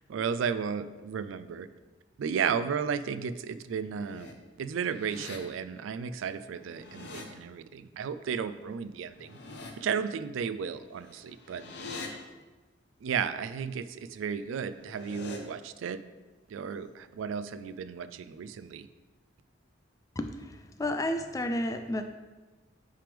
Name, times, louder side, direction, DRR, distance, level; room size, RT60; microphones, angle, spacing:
voice 1, 0.1-1.7 2.2-9.4 9.8-11.6 13.0-16.0 16.5-18.9, right 6 dB, 85° right, 13 dB, 0.3 m, -34 dB
sound 1, 3.7-4.3 4.7-5.4 6.5-7.2 9.0-9.7 10.9-12.1 14.6-15.4, left 3 dB, 60° left, 0.8 m, -44 dB
voice 2, 20.2-22.0, left 1 dB, 15° left, 7 dB, 0.3 m, -32 dB
8.8 x 3.4 x 3.4 m, 1.2 s
head